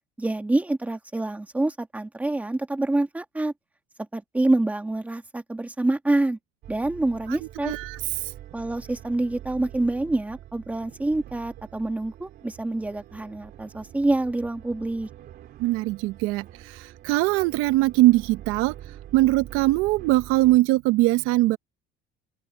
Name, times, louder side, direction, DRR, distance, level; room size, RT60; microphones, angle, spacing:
voice 1, 0.2-3.5 4.1-6.4 6.7-7.7 8.5-15.1, right 2 dB, 5° right, 1.8 m, -26 dB
sound 1, 6.6-20.6, right 12 dB, 50° right, 3.0 m, -45 dB
voice 2, 7.6-8.0 15.6-18.7 19.1-21.6, right 18 dB, 90° right, 0.8 m, -21 dB
open air
cardioid pair, 170°, 21 cm